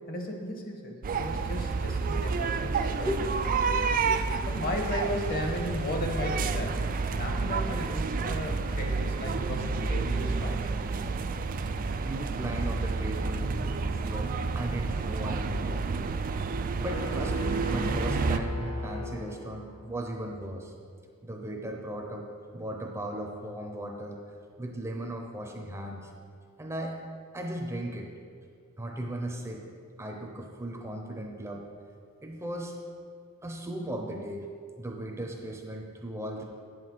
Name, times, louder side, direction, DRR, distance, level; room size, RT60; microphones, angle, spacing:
voice 1, 0.1-3.1 4.5-10.9, left 1 dB, 45° left, 2 dB, 1.2 m, -35 dB
sound 1, 1.0-18.4, right 4 dB, 40° right, 0.3 m, -30 dB
voice 2, 3.6-4.6 12.0-16.1 16.8-20.7 21.2-22.3 22.5-24.2 24.6-26.1 26.6-27.0 27.3-28.1 28.8-29.7 30.0-31.6 32.2-32.7 33.4-36.4, right 1 dB, 10° right, 1 dB, 0.7 m, -37 dB
sound 2, 16.9-19.8, left 1 dB, 25° left, 0.7 m, -36 dB
8.4 x 7.6 x 4.6 m, 2.2 s
head